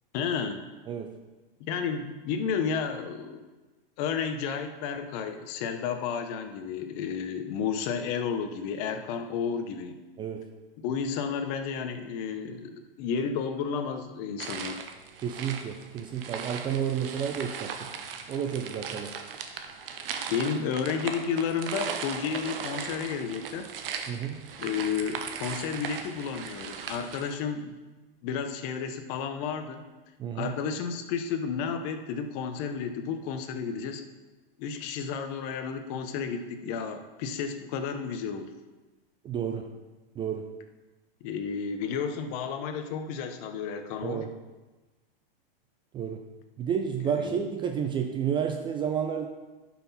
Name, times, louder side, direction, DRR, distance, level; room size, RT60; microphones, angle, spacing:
voice 1, 0.1-0.7 1.6-3.5 4.0-10.0 10.8-14.8 19.8-20.0 20.3-23.7 24.6-27.7 28.2-29.8 30.3-34.0 34.6-38.5 41.2-44.2 47.0-47.4, left 6 dB, 45° left, 7 dB, 1.0 m, -32 dB
voice 2, 0.9-1.2 10.2-10.5 15.2-17.9 18.3-19.1 24.1-24.4 30.2-30.5 39.2-39.7 40.2-40.5 44.0-44.3 45.9-46.2 46.6-49.3, right 8 dB, 15° right, 5 dB, 0.4 m, -31 dB
sound 1, 14.4-27.4, right 7 dB, 70° right, 1.1 m, -38 dB
11.0 x 6.0 x 4.2 m, 1.2 s
hypercardioid pair, 130°, 29 cm